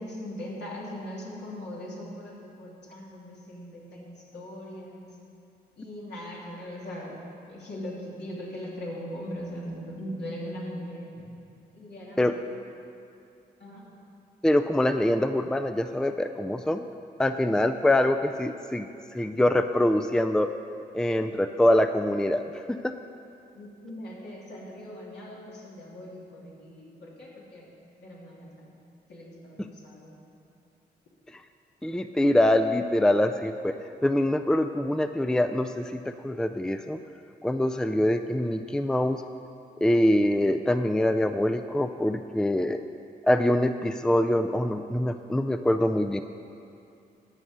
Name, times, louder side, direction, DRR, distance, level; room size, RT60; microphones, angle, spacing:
voice 1, 0.0-5.2 5.8-7.2 7.5-11.1 11.7-12.5 13.6-13.9 23.5-27.7 28.0-28.7 29.1-30.2, equal, 75° left, -5 dB, 2.8 m, -40 dB
voice 2, 14.4-16.9 17.2-20.5 20.9-22.8 31.8-33.7 34.0-37.0 37.4-39.2 39.8-42.8 43.2-46.2, left 1 dB, 5° left, 9 dB, 0.4 m, -24 dB
11.5 x 5.4 x 8.0 m, 2.6 s
cardioid pair, 65°, 18 cm